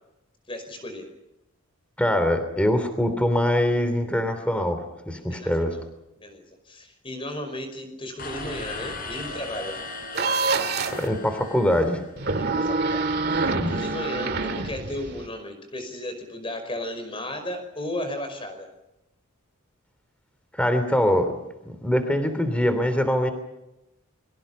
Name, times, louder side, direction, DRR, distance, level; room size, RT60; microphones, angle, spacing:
voice 1, 0.5-1.1 5.2-5.5 6.2-9.8 12.4-18.7, left 1 dB, 25° left, 7 dB, 5.2 m, -35 dB
voice 2, 2.0-5.7 11.0-12.0 13.5-13.8 20.6-21.3 21.6-23.3, equal, 5° left, 8 dB, 3.1 m, -23 dB
sound 1, 8.2-12.4, left 2 dB, 40° left, 4.9 m, -37 dB
sound 2, 10.1-11.1 12.2-15.3, right 3 dB, 45° right, 2.1 m, -26 dB
29.0 x 24.5 x 5.6 m, 0.91 s
head